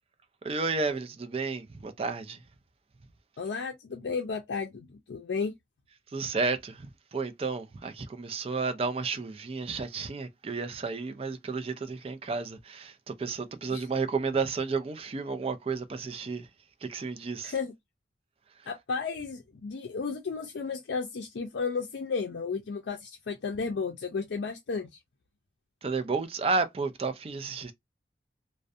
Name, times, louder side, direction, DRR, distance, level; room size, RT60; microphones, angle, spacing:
voice 1, 0.4-2.4 6.1-16.5 16.8-17.5 25.8-27.7, right 4 dB, 30° right, 0.3 m, -32 dB
voice 2, 3.4-5.5 13.7-13.9 17.4-17.7 18.7-24.9, left 5 dB, 80° left, 0.4 m, -33 dB
2.4 x 2.1 x 2.5 m
head